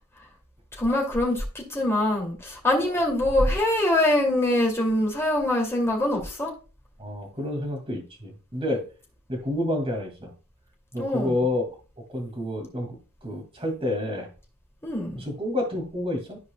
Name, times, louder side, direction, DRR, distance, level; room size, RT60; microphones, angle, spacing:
voice 1, 0.8-6.5 11.0-11.4 14.8-15.2, left 1 dB, 10° left, 2.4 m, -24 dB
voice 2, 7.0-8.8 9.3-10.3 10.9-11.6 12.1-14.3 15.1-16.4, left 1 dB, 25° right, 2.1 m, -29 dB
13.5 x 4.7 x 2.2 m
head